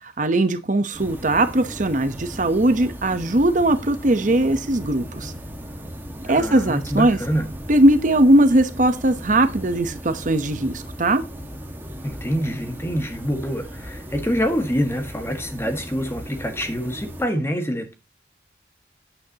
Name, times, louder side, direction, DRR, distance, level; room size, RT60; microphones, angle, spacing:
voice 1, 0.0-5.3 6.3-7.2 7.7-11.2, right 1 dB, 45° right, 0.9 m, -19 dB
sound 1, 0.9-17.3, equal, 10° right, 1.7 m, -37 dB
voice 2, 6.2-7.5 12.0-17.9, equal, 15° left, 1.6 m, -26 dB
12.0 x 9.0 x 2.9 m
head